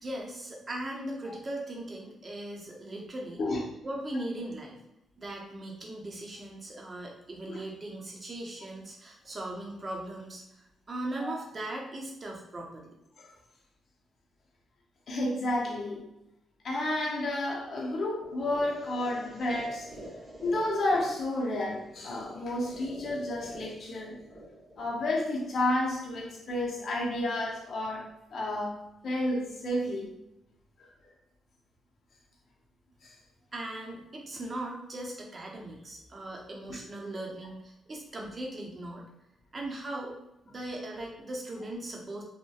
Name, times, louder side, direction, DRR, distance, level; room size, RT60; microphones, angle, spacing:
voice 1, 0.0-3.4 3.8-4.8 5.2-13.0 33.5-39.0 39.5-40.1 40.4-42.2, right 1 dB, 35° right, -1 dB, 0.6 m, -39 dB
voice 2, 15.1-16.0 16.6-19.9 20.4-24.2 24.8-28.8 29.0-30.1 30.8-30.9 33.0-33.1, left 1 dB, 60° left, -1 dB, 0.6 m, -31 dB
sound 1, 18.2-26.2, equal, 5° right, 1.0 m, -47 dB
2.6 x 2.1 x 2.3 m, 0.85 s
supercardioid pair, 65°, 0 cm